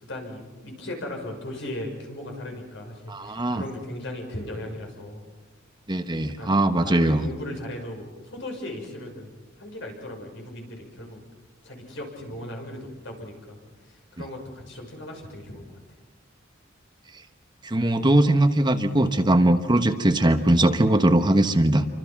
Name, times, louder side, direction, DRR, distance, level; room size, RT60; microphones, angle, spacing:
voice 1, 0.0-5.2 6.4-11.2 11.6-15.8, left 1 dB, 65° left, 2 dB, 6.4 m, -37 dB
voice 2, 3.1-3.6 5.9-7.3 17.6-21.9, right 1 dB, 25° right, 7 dB, 1.2 m, -20 dB
28.5 x 25.0 x 5.9 m, 1.2 s
head